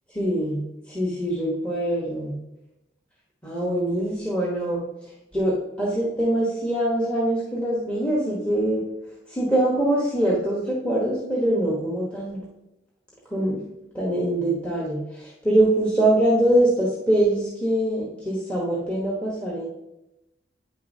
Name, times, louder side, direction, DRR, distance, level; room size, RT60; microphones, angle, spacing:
voice 1, 0.1-2.3 3.4-4.8 5.3-8.8 9.3-12.4 13.3-13.6 13.9-19.6, right 1 dB, 5° left, -4 dB, 1.1 m, -23 dB
9.0 x 6.5 x 2.8 m, 0.90 s
head